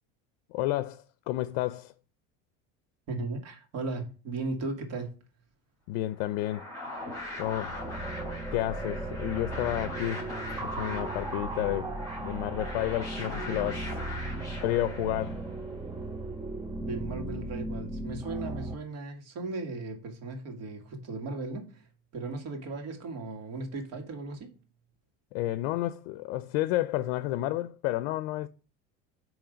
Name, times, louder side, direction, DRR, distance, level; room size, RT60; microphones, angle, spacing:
voice 1, 0.5-1.9 5.9-6.7 7.4-7.8 8.5-10.3 10.6-11.9 12.2-14.0 14.6-15.5 25.3-28.5, left 15 dB, 75° left, 0.5 m, -31 dB
voice 2, 3.1-5.1 16.8-21.9 22.1-24.6, right 3 dB, 55° right, 1.8 m, -36 dB
sound 1, 6.2-15.6, left 2 dB, 10° left, 3.8 m, -41 dB
sound 2, 7.1-18.7, right 2 dB, 10° right, 0.4 m, -37 dB
8.7 x 3.1 x 5.1 m
cardioid pair, 145°, 30 cm